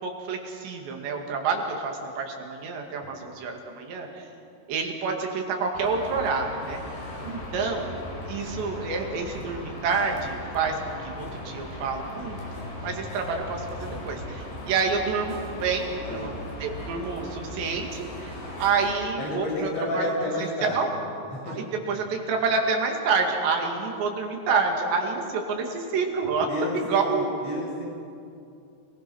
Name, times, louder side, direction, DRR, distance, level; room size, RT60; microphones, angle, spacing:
voice 1, 0.0-4.3 4.7-6.8 7.2-7.9 8.3-12.4 12.8-16.3 16.6-19.7 19.9-20.1 20.6-20.9 21.5-26.5 26.9-27.3, right 4 dB, 80° right, 2 dB, 4.5 m, -28 dB
sound 1, 5.7-18.9, left 1 dB, 65° left, 6.0 m, -38 dB
voice 2, 16.0-16.5 19.2-20.9 21.3-21.6 26.5-27.8, left 1 dB, 90° left, -4 dB, 9.3 m, -31 dB
28.0 x 19.0 x 6.3 m, 2.6 s
omnidirectional pair, 5.0 m